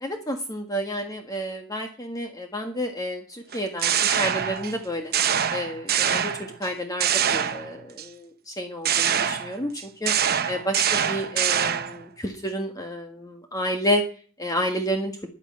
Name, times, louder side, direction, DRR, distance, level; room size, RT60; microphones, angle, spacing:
voice 1, 0.0-3.9 4.2-5.1 5.5-6.3 6.6-9.7 10.0-10.1 10.5-14.0 14.4-15.1, equal, 15° left, 4 dB, 1.6 m, -30 dB
sound 1, 3.5-4.8 5.1-6.7 7.0-8.0 8.8-12.0, right 8 dB, 50° right, 1.1 m, -24 dB
11.0 x 10.0 x 8.7 m, 0.42 s
head